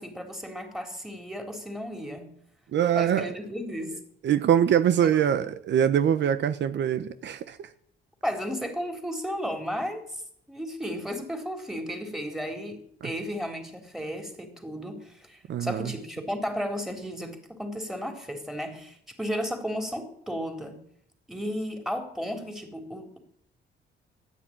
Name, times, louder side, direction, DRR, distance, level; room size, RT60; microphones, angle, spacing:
voice 1, 0.0-2.3 3.0-4.0 5.0-5.4 8.2-10.2 10.5-20.8 21.3-23.2, equal, ahead, 3.7 m, -34 dB
voice 2, 2.7-3.3 4.2-7.7 15.5-15.9, right 9 dB, 65° right, 0.8 m, -23 dB
13.5 x 10.0 x 8.8 m
cardioid pair, 90°, 20 cm